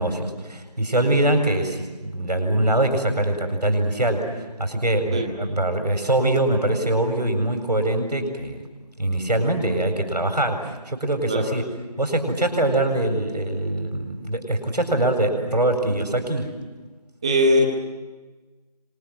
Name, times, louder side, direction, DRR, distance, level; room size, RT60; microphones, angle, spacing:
voice 1, 0.0-4.3 4.6-8.6 9.0-11.6 12.0-16.5, right 1 dB, 85° right, 6 dB, 7.6 m, -23 dB
voice 2, 17.2-17.6, equal, 10° right, 1 dB, 1.1 m, -20 dB
26.5 x 26.0 x 8.2 m, 1.3 s
figure-of-eight pair, 170°, 21 cm